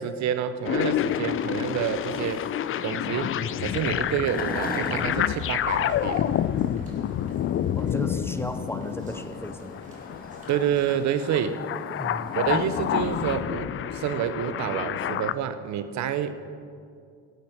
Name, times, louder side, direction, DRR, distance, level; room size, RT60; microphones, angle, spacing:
voice 1, 0.0-2.5 2.8-6.3 10.5-11.6 12.3-16.3, right 9 dB, 65° right, 11 dB, 0.8 m, -28 dB
sound 1, 0.7-15.3, left 10 dB, 45° left, 0.4 m, -29 dB
sound 2, 1.0-13.4, left 1 dB, 30° left, 2.5 m, -41 dB
sound 3, 4.3-11.1, right 1 dB, 25° right, 3.1 m, -56 dB
voice 2, 7.8-9.8 12.0-12.4, left 1 dB, 10° left, 8 dB, 0.7 m, -34 dB
17.5 x 8.0 x 4.5 m, 2.3 s
cardioid pair, 90°, 30 cm